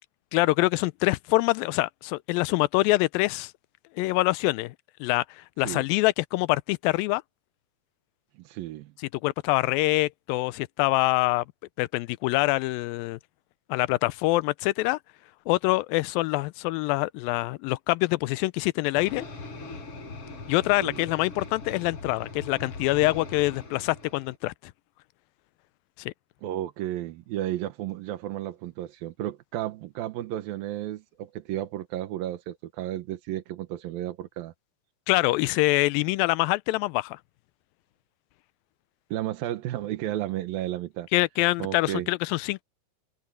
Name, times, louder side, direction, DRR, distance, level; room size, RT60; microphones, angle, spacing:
voice 1, 0.3-3.5 4.0-4.8 5.0-7.2 9.2-11.4 11.8-13.2 13.7-15.0 15.5-19.3 20.5-24.5 26.0-26.1 35.1-37.2 41.1-42.6, left 20 dB, 85° left, 2.3 m, -25 dB
voice 2, 8.4-8.9 20.8-21.0 26.4-34.5 39.1-41.1 41.6-42.1, right 13 dB, 80° right, 2.9 m, -33 dB
sound 1, 18.9-24.4, left 3 dB, 40° left, 5.0 m, -41 dB
omnidirectional pair, 4.1 m